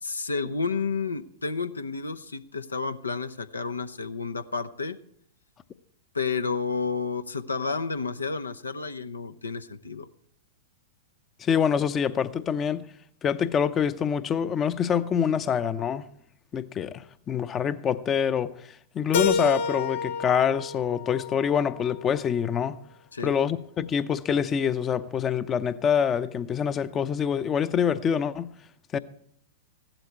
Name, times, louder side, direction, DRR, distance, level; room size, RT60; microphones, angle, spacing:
voice 1, 0.0-5.0 6.1-10.1 23.1-23.3, left 4 dB, 85° left, 0.8 m, -31 dB
voice 2, 11.4-12.8 13.2-16.0 16.5-18.5 18.9-22.8 23.2-28.5 28.9-29.0, left 7 dB, 25° left, 0.7 m, -25 dB
Keyboard (musical), 19.1-22.0, left 5 dB, 55° left, 1.2 m, -29 dB
15.5 x 12.0 x 4.5 m
figure-of-eight pair, 100°, 0 cm